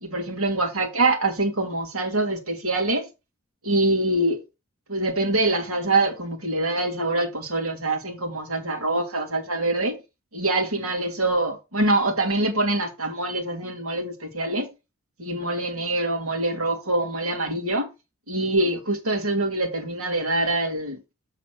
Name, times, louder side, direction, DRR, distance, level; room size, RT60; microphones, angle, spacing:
voice 1, 0.0-3.1 3.6-4.4 4.9-10.0 10.3-14.7 15.2-17.9 18.3-21.0, right 2 dB, 80° right, 2.5 m, -24 dB
6.7 x 4.1 x 6.0 m
head